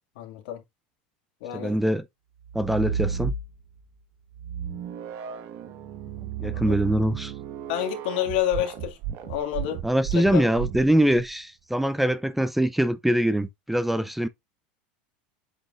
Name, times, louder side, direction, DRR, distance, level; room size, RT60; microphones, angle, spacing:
voice 1, 0.2-0.6 1.4-1.8 6.4-6.8 7.7-9.0 9.2-9.8 10.1-10.4, left 11 dB, 80° left, 2.3 m, -29 dB
voice 2, 1.5-2.0 2.5-3.3 6.4-7.3 9.8-14.3, right 1 dB, 5° right, 0.5 m, -23 dB
sound 1, 2.4-3.8 4.3-11.3, right 8 dB, 55° right, 1.3 m, -33 dB
7.8 x 5.3 x 2.5 m
supercardioid pair, 125°, 5 cm